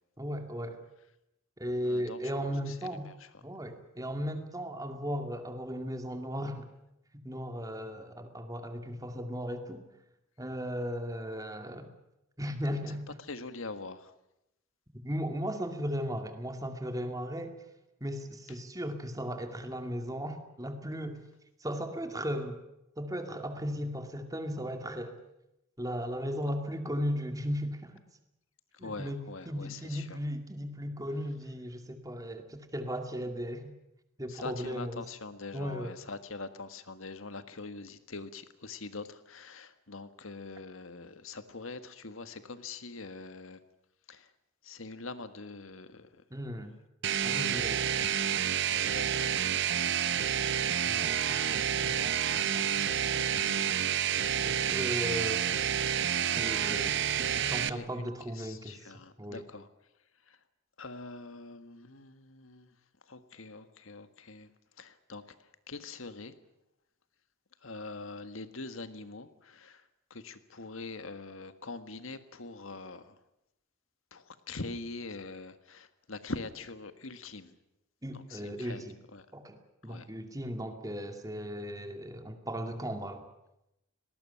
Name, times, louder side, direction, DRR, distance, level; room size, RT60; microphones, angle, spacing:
voice 1, 0.2-0.8 1.6-3.1 3.4-6.7 7.2-9.9 10.4-11.9 12.4-13.0 14.9-17.5 18.0-21.2 21.6-22.6 23.0-25.2 25.8-28.0 28.8-33.7 34.2-35.0 35.5-35.9 46.3-46.7 47.2-47.8 50.8-52.1 52.5-52.6 54.4-55.4 56.3-56.9 57.3-58.9 59.2-59.4 78.0-79.0 79.3-83.2, equal, 15° right, 6 dB, 2.3 m, -36 dB
voice 2, 1.8-3.4 13.2-14.1 28.7-30.2 34.3-43.6 44.1-44.3 44.6-46.2 47.2-47.5 48.6-49.6 50.7-51.4 51.7-52.6 53.1-54.1 56.9-59.7 60.2-60.4 60.8-62.7 63.0-66.3 67.6-73.2 74.1-77.6 78.1-78.8 79.1-79.3 79.8-80.1, left 3 dB, 75° left, 11 dB, 1.7 m, -44 dB
sound 1, 47.0-57.7, right 9 dB, 55° right, 0.8 m, -29 dB
19.0 x 18.5 x 10.0 m, 0.87 s
head